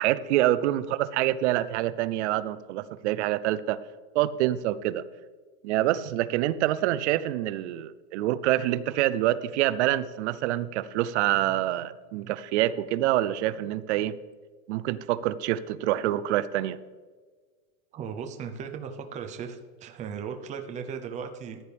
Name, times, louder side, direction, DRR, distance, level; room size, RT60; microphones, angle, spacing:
voice 1, 0.0-3.8 4.1-5.0 5.6-14.1 14.7-16.8, right 14 dB, 55° right, 16 dB, 0.6 m, -26 dB
voice 2, 17.9-21.6, right 6 dB, 15° right, 5 dB, 0.7 m, -37 dB
15.0 x 10.0 x 3.4 m, 1.4 s
supercardioid pair, 155°, 42 cm